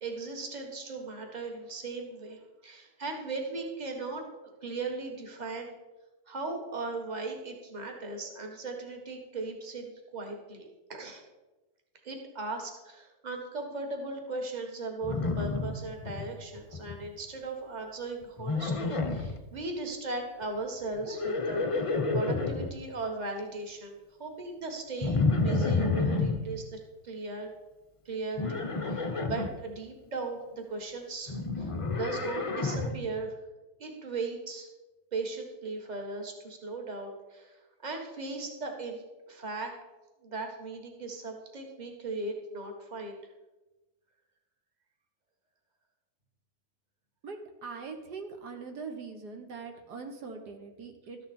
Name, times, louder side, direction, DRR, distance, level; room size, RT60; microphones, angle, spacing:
voice 1, 0.0-5.7 6.3-11.2 12.0-21.6 22.1-27.5 28.1-33.4 33.8-34.7 35.1-39.8 40.2-43.2, right 3 dB, 25° right, 3 dB, 1.7 m, -38 dB
Livestock farm animals working animals, 15.0-16.3 16.6-17.1 18.4-19.4 21.0-22.7 25.0-26.4 28.4-29.5 31.3-33.0, left 3 dB, 35° left, 0.5 m, -29 dB
voice 2, 47.2-51.2, right 4 dB, 80° right, 5 dB, 1.8 m, -42 dB
13.5 x 10.0 x 4.4 m, 1.1 s
omnidirectional pair, 1.7 m